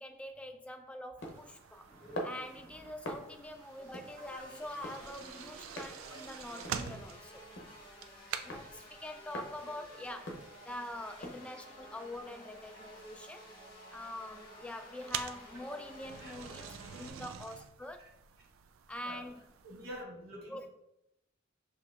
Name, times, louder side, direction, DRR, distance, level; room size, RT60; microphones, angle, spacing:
voice 1, 0.0-1.9 2.2-7.4 8.4-10.4 10.6-13.5 13.9-18.1 18.9-19.5 20.5-20.7, left 1 dB, 5° left, 5 dB, 0.3 m, -45 dB
sound 1, 1.2-11.5, equal, 60° left, 0.8 m, -47 dB
sound 2, 1.2-20.0, right 8 dB, 80° right, 0.3 m, -48 dB
sound 3, 1.9-17.1, equal, 30° left, 1.5 m, -53 dB
voice 2, 5.8-6.2 10.0-10.1 16.2-16.3 18.0-18.1 18.9-19.2 19.6-20.7, equal, 50° right, -4 dB, 1.4 m, -48 dB
6.6 x 2.8 x 2.4 m, 0.82 s
head